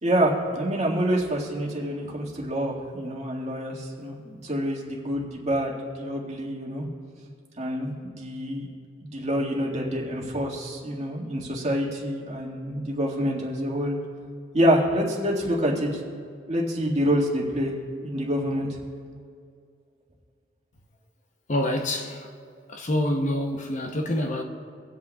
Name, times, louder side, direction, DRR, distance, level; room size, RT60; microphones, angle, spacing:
voice 1, 0.0-6.8 7.6-8.7 9.0-14.0 14.5-16.0 16.5-17.7 18.0-18.7, equal, 35° right, 1.9 m, -27 dB
voice 2, 21.5-22.3 22.7-24.4, left 1 dB, 40° left, 0.8 m, -26 dB
25.5 x 8.6 x 2.4 m
head